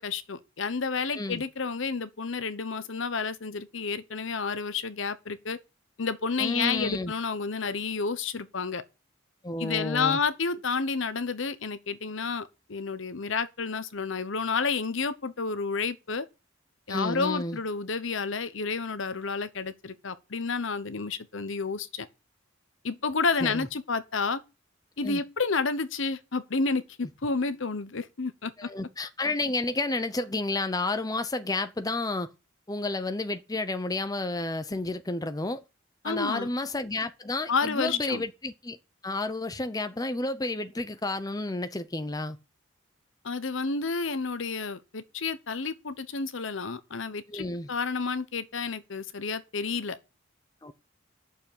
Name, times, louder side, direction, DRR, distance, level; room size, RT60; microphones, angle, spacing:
voice 1, 0.0-5.6 6.0-8.8 9.6-16.2 16.9-22.1 22.8-24.4 25.0-28.5 36.0-36.5 37.5-38.2 43.2-50.0, left 4 dB, 65° left, 0.9 m, -30 dB
voice 2, 1.1-1.4 6.4-7.1 9.4-10.2 16.9-17.6 23.4-23.7 25.0-25.2 28.6-32.3 32.7-35.6 36.0-38.8 39.0-42.4 47.3-47.7 50.6-50.7, left 2 dB, 20° left, 0.7 m, -31 dB
8.4 x 6.8 x 8.6 m
head